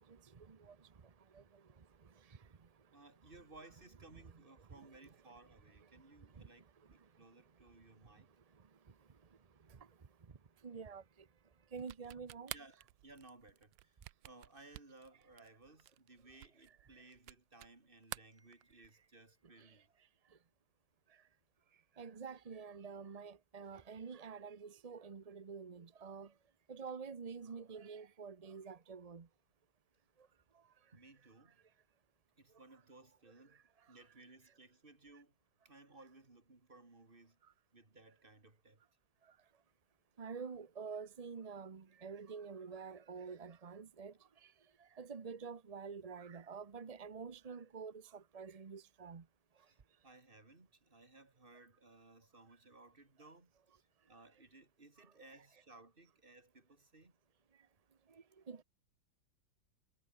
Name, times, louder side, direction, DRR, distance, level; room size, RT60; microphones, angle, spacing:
voice 1, 0.4-0.8 1.3-1.4 4.7-4.9 6.4-6.5 10.6-11.0 11.7-12.5 22.0-26.3 26.7-29.3 40.2-44.1 45.0-49.2 58.5-58.6, right 5 dB, 45° right, 0.5 m, -47 dB
voice 2, 2.9-8.3 12.0-12.2 12.5-14.0 14.2-19.9 30.9-31.6 32.4-33.6 33.9-35.3 35.6-37.4 37.7-38.8 49.6-49.8 50.0-53.5 54.1-57.1, right 2 dB, 25° right, 3.2 m, -60 dB
sound 1, 11.8-17.8 18.0-19.1, right 16 dB, 80° right, 1.3 m, -50 dB
omnidirectional pair, 2.0 m